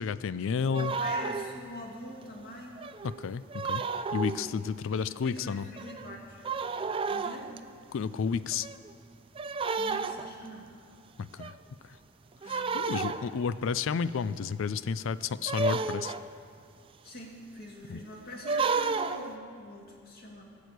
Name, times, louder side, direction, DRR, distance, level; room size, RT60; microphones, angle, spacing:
voice 1, 0.0-0.9 3.0-3.8 4.1-5.7 7.9-8.7 11.2-11.5 12.5-16.1 17.9-18.0, left 6 dB, 65° left, 16 dB, 0.4 m, -31 dB
voice 2, 0.7-2.8 4.4-6.4 7.1-7.5 9.8-10.7 12.4-13.4 17.0-20.4, equal, 50° left, -1 dB, 2.3 m, -44 dB
sound 1, 0.7-1.6 2.2-2.3 2.8-4.5 5.4-5.5 5.8-6.2 6.4-7.6 8.5-8.9 9.4-10.5 11.4-11.5 12.4-13.5 15.5-16.3 18.3-19.3, right 4 dB, 25° right, 0.4 m, -32 dB
18.5 x 6.3 x 8.1 m, 2.3 s
head